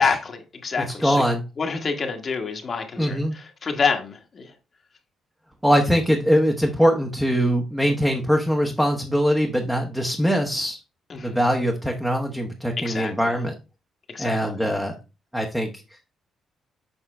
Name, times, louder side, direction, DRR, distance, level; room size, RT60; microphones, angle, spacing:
voice 1, 0.0-1.2 1.6-4.5 11.1-11.4 12.8-13.4 14.1-14.6, left 5 dB, 45° left, 1.4 m, -27 dB
voice 2, 0.8-1.4 3.0-3.3 5.6-10.8 11.2-13.5 14.2-15.0 15.3-15.7, equal, 5° right, 1.1 m, -22 dB
7.3 x 4.8 x 3.3 m
cardioid pair, 90°, 0 cm